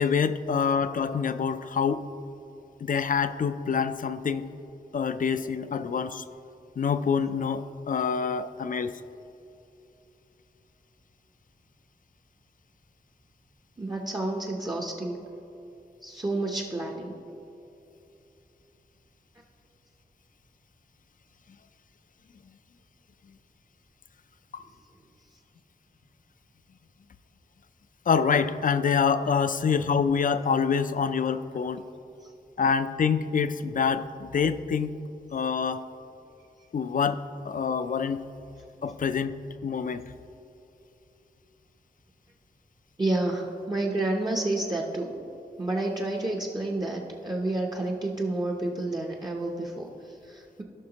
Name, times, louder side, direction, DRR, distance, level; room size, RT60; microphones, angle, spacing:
voice 1, 0.0-2.1 2.8-4.5 4.9-6.2 6.8-9.0 24.5-24.6 28.1-31.8 32.6-35.0 35.3-35.8 36.7-38.3 38.8-40.0, left 6 dB, 55° left, 12 dB, 0.4 m, -26 dB
voice 2, 13.8-15.2 16.0-17.2 32.2-32.3 43.0-45.2 45.6-50.6, right 2 dB, 25° right, 0 dB, 0.7 m, -30 dB
16.0 x 5.9 x 2.9 m, 2.9 s
wide cardioid pair, 115°, 17 cm